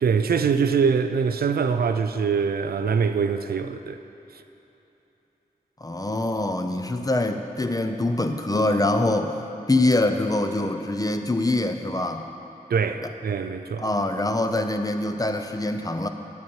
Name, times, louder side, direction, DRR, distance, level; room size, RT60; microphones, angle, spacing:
voice 1, 0.0-4.0 12.7-13.8, right 6 dB, 90° right, 8 dB, 0.4 m, -23 dB
voice 2, 5.8-9.4 9.7-12.3 13.0-13.1 13.8-16.1, left 2 dB, 25° left, 6 dB, 0.6 m, -24 dB
10.5 x 7.2 x 4.7 m, 3.0 s
cardioid pair, 45°, 15 cm